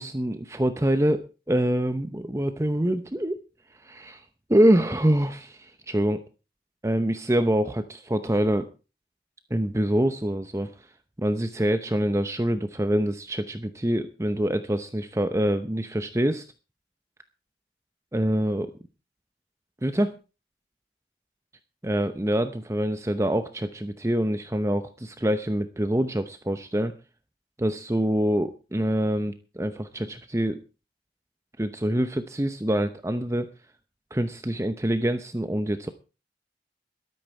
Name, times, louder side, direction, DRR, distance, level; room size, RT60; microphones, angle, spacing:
voice 1, 0.0-3.4 3.8-4.2 4.5-6.2 6.8-8.7 9.5-10.9 11.2-16.4 18.1-18.7 19.8-20.1 21.8-26.9 27.6-30.6 31.6-33.5 34.1-35.9, right 1 dB, 15° right, 10 dB, 0.8 m, -25 dB
13.5 x 13.0 x 4.5 m, 0.32 s
head